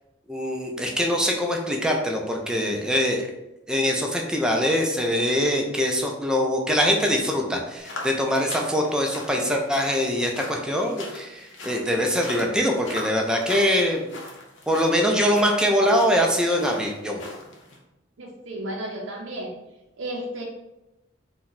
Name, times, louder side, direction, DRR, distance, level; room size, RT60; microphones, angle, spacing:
voice 1, 0.3-3.3 3.7-14.1 14.7-17.2, equal, 5° right, 1 dB, 0.4 m, -23 dB
sound 1, 7.8-17.8, left 2 dB, 75° left, 0.7 m, -40 dB
voice 2, 18.2-19.5 20.0-20.4, right 1 dB, 80° right, -2 dB, 0.5 m, -33 dB
2.7 x 2.2 x 3.9 m, 0.94 s
head